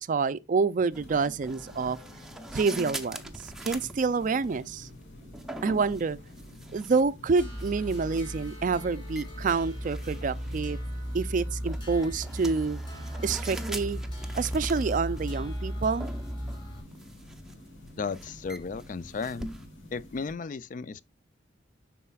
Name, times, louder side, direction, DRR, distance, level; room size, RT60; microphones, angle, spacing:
voice 1, 0.0-2.0 2.5-4.9 5.6-6.2 6.7-10.8 11.1-12.8 13.2-14.0 14.4-16.1, right 4 dB, 45° right, 0.4 m, -27 dB
sound 1, 0.9-20.3, left 1 dB, 70° left, 2.6 m, -49 dB
sound 2, 0.9-19.7, right 1 dB, ahead, 0.6 m, -44 dB
sound 3, 7.4-16.8, equal, 25° left, 2.9 m, -36 dB
voice 2, 18.0-19.5 19.9-21.0, left 5 dB, 45° left, 0.4 m, -34 dB
11.0 x 4.2 x 2.3 m
head